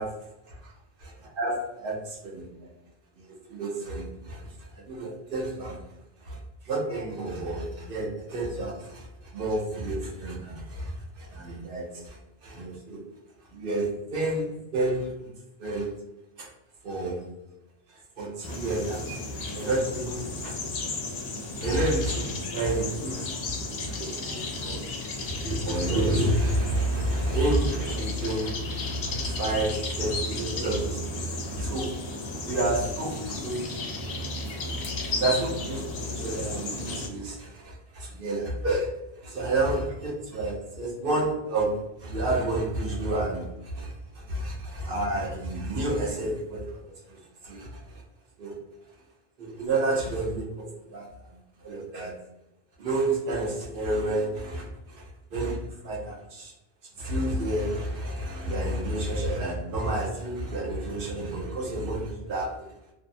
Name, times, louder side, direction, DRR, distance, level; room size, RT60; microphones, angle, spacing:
voice 1, 1.0-2.0 2.6-2.7 3.2-4.5 4.7-5.8 6.2-6.4 6.6-13.0 13.5-15.3 15.6-15.9 16.4-16.5 16.8-17.2 18.2-19.2 19.5-20.6 21.6-23.2 23.4-23.5 23.8-24.8 25.3-31.9 32.5-33.6 35.2-46.6 46.9-48.0 48.4-48.5 49.4-51.1 51.6-52.2 52.8-55.0 55.3-56.5 57.0-62.7, right 2 dB, 60° right, -2 dB, 0.9 m, -30 dB
sound 1, 18.4-37.1, left 2 dB, 85° left, 0.9 m, -34 dB
2.7 x 2.0 x 2.6 m, 0.93 s
omnidirectional pair, 1.1 m